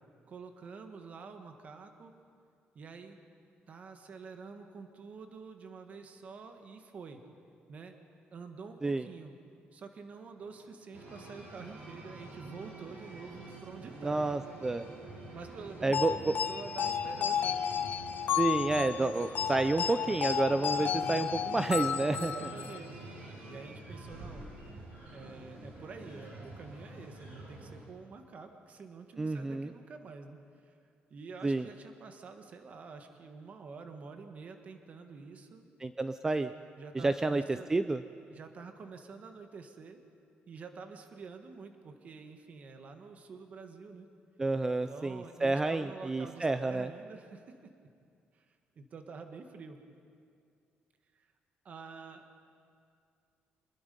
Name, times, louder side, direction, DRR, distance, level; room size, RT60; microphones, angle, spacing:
voice 1, 0.3-2.1 2.7-3.2 3.7-7.2 7.7-8.0 8.3-9.3 9.7-14.3 15.3-17.7 22.1-23.0 23.5-24.5 25.1-30.7 31.1-35.6 36.8-37.7 38.3-40.0 40.5-44.1 44.7-47.7 48.3-48.5 48.7-49.8 51.1-51.3 51.6-52.4, right 4 dB, 40° right, 6 dB, 1.6 m, -48 dB
sound 1, 10.4-22.6, right 11 dB, 80° right, 4.0 m, -55 dB
sound 2, 10.9-27.8, right 1 dB, 60° right, 7.8 m, -47 dB
voice 2, 14.0-14.9 15.8-16.3 18.4-22.3 29.2-29.7 31.4-31.7 35.8-36.5 36.9-38.0 44.4-46.9, right 2 dB, 15° right, 10 dB, 0.4 m, -30 dB
sound 3, 15.9-22.8, left 8 dB, 55° left, 0.8 m, -33 dB
26.0 x 20.5 x 5.4 m, 2.4 s
cardioid pair, 165°, 4 cm